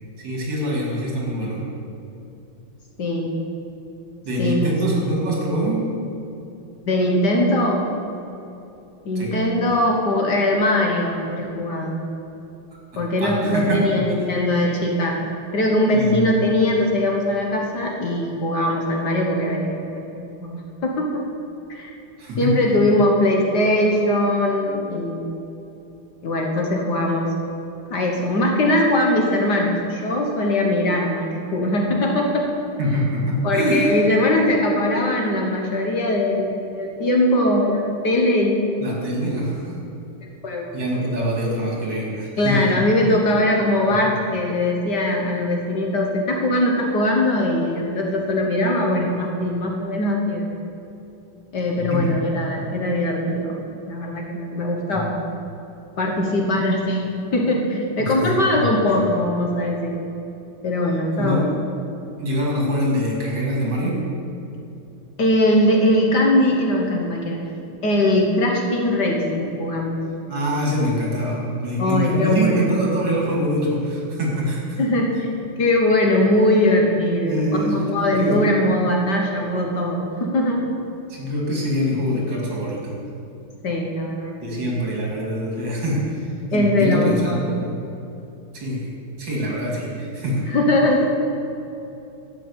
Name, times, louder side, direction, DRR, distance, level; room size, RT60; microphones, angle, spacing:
voice 1, 0.2-1.6 4.2-5.8 9.2-9.3 12.9-13.8 15.9-16.3 22.2-22.5 32.8-33.9 38.8-39.8 40.7-42.8 51.8-52.2 54.9-55.1 58.0-58.3 58.6-58.9 61.2-61.4 62.2-64.0 70.3-74.8 77.2-78.4 81.1-83.0 84.4-87.8 88.5-88.9 89.2-90.5, equal, 60° right, -3 dB, 3.1 m, -24 dB
voice 2, 3.0-3.3 4.4-4.7 6.9-7.9 9.0-12.0 13.0-15.2 15.5-21.2 21.7-21.9 22.4-25.4 26.2-27.3 27.9-32.5 33.4-39.1 40.4-40.7 42.4-50.6 51.5-55.1 56.0-60.0 60.6-61.5 65.2-67.4 67.8-70.0 71.8-72.7 74.8-75.3 75.6-80.6 83.6-84.5 86.5-87.4 90.5-91.1, left 1 dB, 55° left, 0 dB, 1.6 m, -21 dB
12.5 x 5.7 x 8.5 m, 2.8 s
omnidirectional pair, 2.4 m